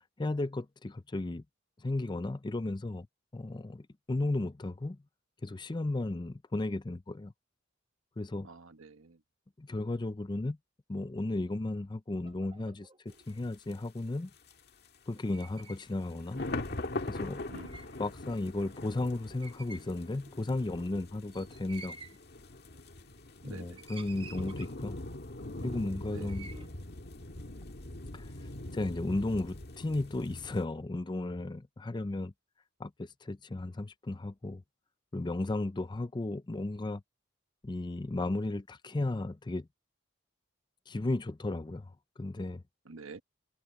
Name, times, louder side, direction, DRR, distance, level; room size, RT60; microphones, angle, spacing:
voice 1, 0.2-1.4 1.8-3.1 3.3-5.0 5.4-7.3 8.2-8.5 9.6-10.6 10.9-12.9 13.3-14.3 15.1-16.4 17.0-17.4 18.0-22.0 23.4-25.0 25.6-26.5 28.1-32.3 32.8-34.6 35.1-37.0 37.6-39.7 40.9-42.6, left 2 dB, 20° left, 0.5 m, -34 dB
voice 2, 8.4-9.2 17.5-17.8 23.4-23.8 26.1-26.4 42.9-43.2, right 3 dB, 85° right, 1.2 m, -48 dB
sound 1, 12.2-13.4 15.1-15.9 16.2-16.3 17.0-18.0 18.6-18.7 18.8-19.1 19.4-20.3 21.3-22.2 23.0-23.4 23.8-25.0 25.7-26.7, right 4 dB, 25° right, 1.1 m, -52 dB
sound 2, 13.1-13.2 13.7-13.8 14.5-14.9 15.4-30.6, left 2 dB, 55° left, 1.7 m, -42 dB
head